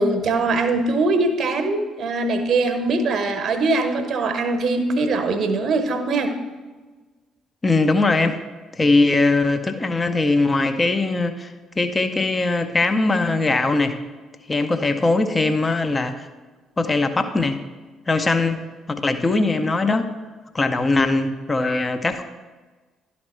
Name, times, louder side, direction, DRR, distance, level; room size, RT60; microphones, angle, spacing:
voice 1, 0.0-6.3, right 3 dB, 40° right, 7 dB, 0.8 m, -22 dB
voice 2, 7.6-8.4 8.7-14.0 14.5-16.3 16.8-17.6 18.1-18.6 18.9-20.1 20.5-22.2, left 3 dB, 25° left, 8 dB, 0.5 m, -20 dB
11.5 x 4.2 x 4.2 m, 1.3 s
figure-of-eight pair, 45°, 0 cm